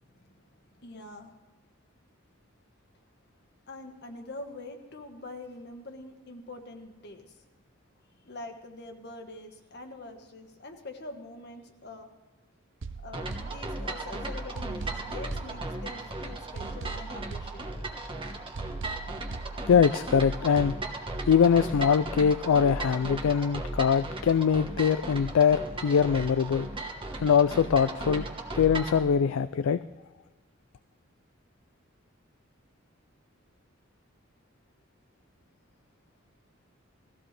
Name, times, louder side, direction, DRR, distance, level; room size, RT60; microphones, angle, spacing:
voice 1, 0.1-1.4 3.7-7.4 8.2-12.1 13.0-17.9, left 2 dB, 55° left, 5 dB, 1.5 m, -44 dB
sound 1, 12.8-14.1 14.6-16.1 16.6-18.1 18.6-20.1 20.6-20.8, right 4 dB, 65° right, 0.6 m, -41 dB
sound 2, 13.1-29.0, right 2 dB, 25° right, 1.3 m, -36 dB
voice 2, 19.7-20.8 21.3-26.7 27.2-28.3 28.6-29.8, left 7 dB, 85° left, 13 dB, 0.4 m, -23 dB
19.0 x 15.0 x 3.4 m, 1.2 s
head